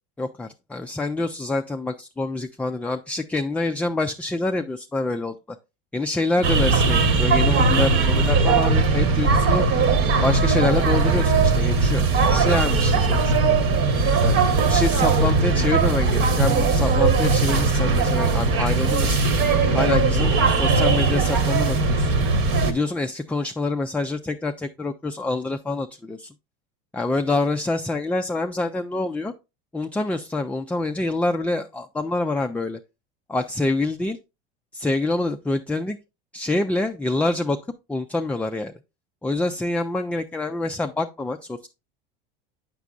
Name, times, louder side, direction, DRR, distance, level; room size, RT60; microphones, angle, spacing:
voice 1, 0.2-5.6 5.9-9.6 10.2-13.5 14.2-14.4 14.6-19.2 19.7-22.1 22.7-26.3 26.9-29.3 29.7-32.8 33.3-34.2 34.7-36.0 36.3-37.6 37.9-38.7 39.2-41.7, left 2 dB, 5° left, 0.3 m, -26 dB
sound 1, 6.4-22.7, right 4 dB, 50° right, 1.2 m, -19 dB
8.0 x 6.0 x 2.4 m
hypercardioid pair, 90°, 29 cm